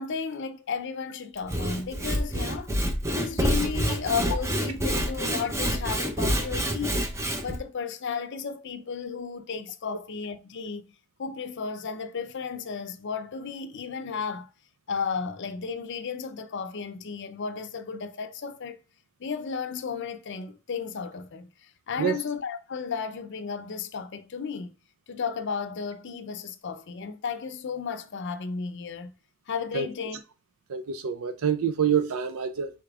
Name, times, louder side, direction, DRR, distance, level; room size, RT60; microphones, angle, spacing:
voice 1, 0.0-2.7 3.1-7.1 7.4-10.9 11.2-14.5 14.9-18.8 19.2-24.7 25.1-29.1 29.5-30.2, left 5 dB, 55° left, 0.5 m, -34 dB
Sawing / Wood, 1.4-7.6, equal, 15° right, 0.5 m, -27 dB
voice 2, 30.7-32.7, right 8 dB, 75° right, 0.4 m, -26 dB
4.9 x 4.2 x 2.4 m
head